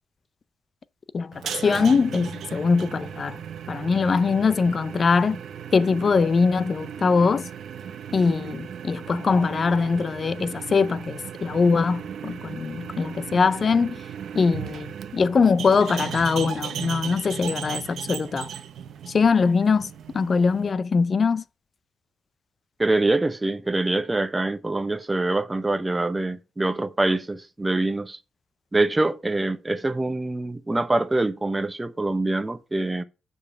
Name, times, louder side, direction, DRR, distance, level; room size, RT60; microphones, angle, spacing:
voice 1, 1.1-3.4 3.7-5.4 5.7-7.5 8.1-14.0 14.3-18.5 19.1-21.4, left 5 dB, 40° left, 0.5 m, -22 dB
sound 1, 1.3-20.7, right 8 dB, 65° right, 0.8 m, -36 dB
voice 2, 22.8-28.2 28.7-33.0, right 2 dB, 15° right, 0.7 m, -24 dB
6.7 x 5.4 x 5.2 m
cardioid pair, 90°, 0 cm